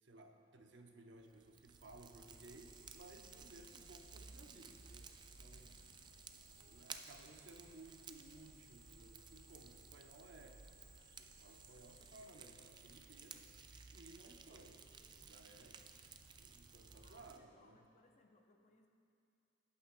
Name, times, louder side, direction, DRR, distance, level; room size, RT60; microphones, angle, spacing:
voice 1, 0.0-5.1 5.4-5.8 6.7-10.7 11.1-13.5 13.9-15.8 16.3-17.8, right 2 dB, 70° right, 3 dB, 0.8 m, -59 dB
Fire, 1.2-17.4, right 5 dB, 25° right, 0.3 m, -57 dB
sound 1, 2.2-12.2, right 3 dB, 50° right, 2.1 m, -65 dB
voice 2, 5.4-6.0 17.0-18.9, left 2 dB, 35° left, 3 dB, 0.6 m, -69 dB
17.0 x 8.5 x 2.2 m, 2.5 s
head